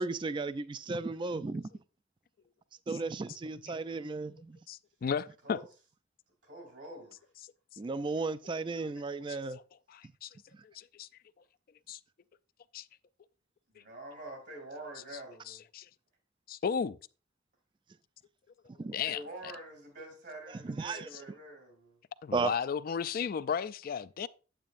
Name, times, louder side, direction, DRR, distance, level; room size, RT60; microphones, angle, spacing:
voice 1, 0.0-1.6 2.9-4.6 7.8-9.6 18.8-18.9 20.6-21.1 22.3-22.5, right 3 dB, 25° right, 0.3 m, -34 dB
voice 2, 4.7-5.6 9.3-9.4 9.9-10.3 10.6-11.1 11.9-12.0 12.7-12.8 15.5-15.9 16.5-17.0 18.9-19.2 22.2-24.3, left 6 dB, 55° left, 0.4 m, -34 dB
voice 3, 6.4-7.3 13.7-15.6 19.1-22.0, right 1 dB, 75° right, 2.7 m, -46 dB
8.9 x 8.3 x 2.5 m
head